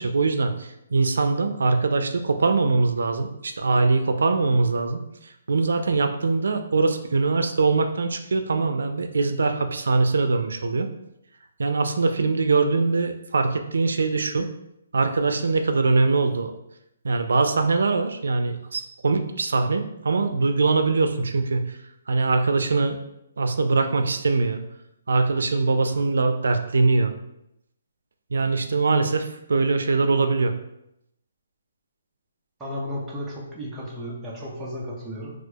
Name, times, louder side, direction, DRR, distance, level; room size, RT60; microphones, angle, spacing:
voice 1, 0.0-5.0 5.5-10.9 11.6-14.5 14.9-16.5 17.0-21.8 22.1-23.0 23.4-24.6 25.1-27.1 28.3-30.5, right 3 dB, 85° right, 7 dB, 0.3 m, -22 dB
voice 2, 32.6-35.3, equal, 5° right, -6 dB, 0.4 m, -34 dB
4.3 x 2.3 x 2.3 m, 0.81 s
hypercardioid pair, 180°, 0 cm